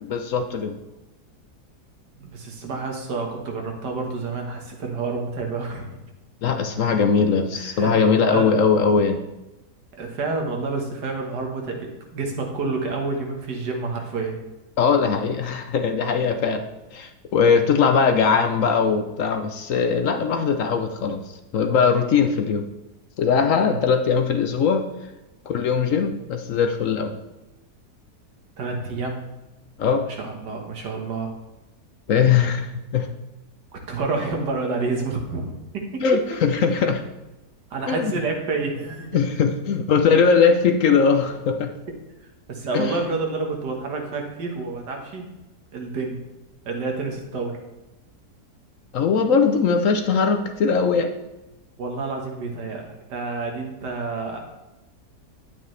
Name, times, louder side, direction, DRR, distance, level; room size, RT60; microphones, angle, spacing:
voice 1, 0.1-0.8 6.4-9.2 14.8-16.6 16.9-21.2 21.5-22.6 23.2-24.9 25.5-27.1 29.8-30.1 32.1-33.1 36.0-37.0 37.9-38.1 39.1-41.7 42.7-43.0 48.9-51.1, left 5 dB, 60° left, 6 dB, 0.9 m, -20 dB
voice 2, 2.2-6.0 7.5-7.9 8.3-8.5 10.0-14.4 23.5-23.8 28.6-29.2 30.1-31.3 33.9-35.6 37.7-39.2 42.5-45.3 45.7-46.2 46.7-47.6 51.8-54.4, right 3 dB, 85° right, 2 dB, 2.1 m, -29 dB
9.9 x 8.6 x 3.3 m, 1.0 s
omnidirectional pair, 1.8 m